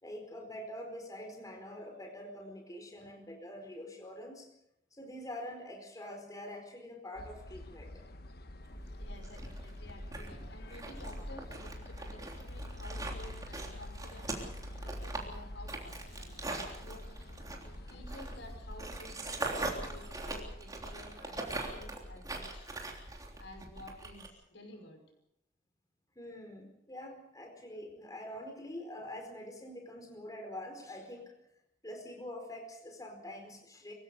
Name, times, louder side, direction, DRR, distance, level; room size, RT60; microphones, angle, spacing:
voice 1, 0.0-4.5 4.9-7.9 17.6-17.9 20.9-21.0 26.1-31.3 31.8-33.9, left 1 dB, 20° left, 3 dB, 4.6 m, -45 dB
sound 1, 7.2-19.0, left 1 dB, 60° left, 1.2 m, -47 dB
sound 2, 8.7-24.3, right 2 dB, 20° right, 3.5 m, -42 dB
voice 2, 9.0-14.5 14.8-17.0 17.9-22.7 23.4-25.0, left 1 dB, 90° left, 4 dB, 5.7 m, -52 dB
25.0 x 16.0 x 6.8 m, 0.80 s
head